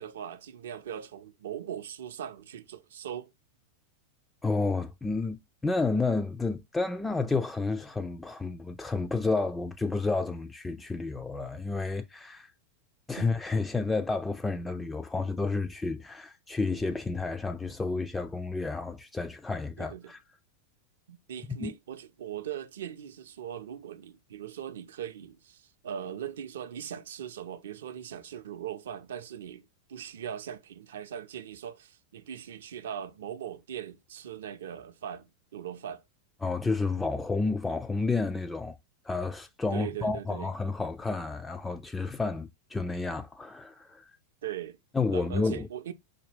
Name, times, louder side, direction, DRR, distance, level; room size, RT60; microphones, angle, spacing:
voice 1, 0.0-3.3 13.2-13.3 19.8-20.1 21.1-36.0 39.7-40.5 44.4-44.8 45.1-45.9, right 9 dB, 60° right, 0.5 m, -40 dB
voice 2, 4.4-12.5 13.1-20.2 21.6-21.7 36.4-38.8 39.0-44.1 44.9-45.7, left 3 dB, 10° left, 0.3 m, -30 dB
5.0 x 2.2 x 3.3 m
figure-of-eight pair, 90°, 0 cm